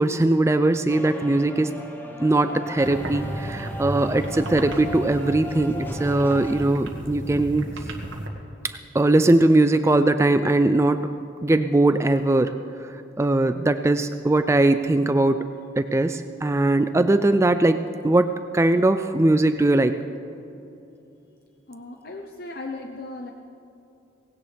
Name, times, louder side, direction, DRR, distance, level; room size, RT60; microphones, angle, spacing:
voice 1, 0.0-1.7 2.2-7.7 8.9-11.0 11.4-15.4 15.8-20.0, right 2 dB, 15° right, 9 dB, 0.3 m, -20 dB
sound 1, 0.9-6.6, left 1 dB, 10° left, 1.1 m, -37 dB
sound 2, 2.8-8.3, right 1 dB, 80° right, 1.7 m, -34 dB
voice 2, 21.7-23.3, left 2 dB, 50° left, 2 dB, 0.8 m, -36 dB
18.5 x 17.0 x 3.4 m, 2.9 s
head